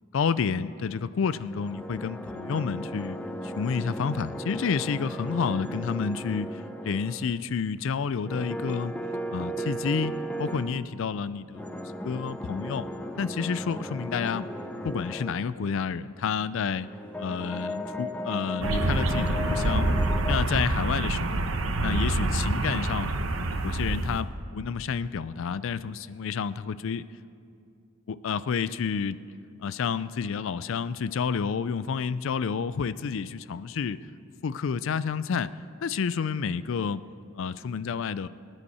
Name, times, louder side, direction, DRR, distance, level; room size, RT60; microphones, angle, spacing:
voice 1, 0.1-3.2 3.4-8.9 9.3-12.9 13.2-14.5 14.8-16.9 17.2-19.9 20.2-21.4 21.8-23.1 23.6-27.0 28.1-29.2 29.6-34.0 34.4-35.5 35.8-37.0 37.3-38.3, left 6 dB, 65° left, 16 dB, 0.4 m, -30 dB
sound 1, 1.3-7.4 8.2-10.8 11.5-15.3 16.7-20.4, equal, 5° left, 0.6 m, -36 dB
sound 2, 18.6-24.2, right 2 dB, 80° right, 1.0 m, -26 dB
22.0 x 9.9 x 4.3 m, 2.5 s
head